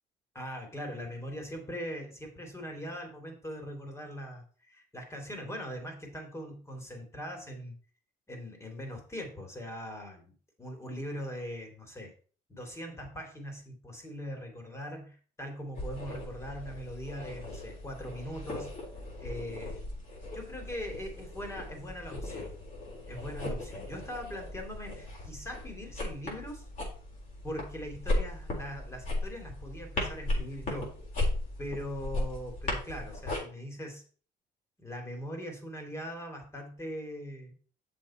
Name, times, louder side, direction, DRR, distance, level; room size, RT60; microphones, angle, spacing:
voice 1, 0.3-7.8 8.3-10.3 10.6-12.1 12.5-18.8 19.2-19.8 20.3-22.6 23.1-26.6 27.4-30.9 31.6-34.0 34.8-37.5, equal, 15° left, 3 dB, 2.8 m, -41 dB
sound 1, 15.7-33.4, left 1 dB, 50° left, 4.0 m, -37 dB
7.6 x 7.0 x 4.3 m, 0.41 s
cardioid pair, 110°, 17 cm